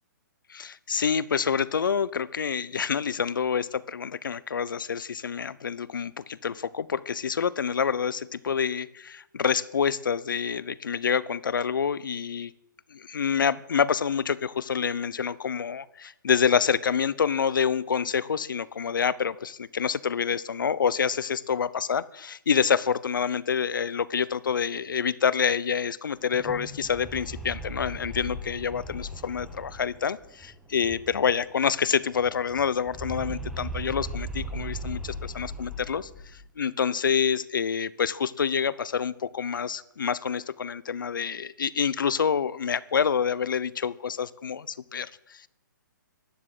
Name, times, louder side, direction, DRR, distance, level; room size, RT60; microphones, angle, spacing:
voice 1, 0.5-12.5 12.9-45.5, left 7 dB, 85° left, 19 dB, 0.8 m, -27 dB
sound 1, 26.2-31.5 31.8-31.9 32.1-36.5, right 1 dB, ahead, 1.1 m, -38 dB
12.0 x 11.5 x 7.9 m, 0.82 s
hypercardioid pair, 175°, 11 cm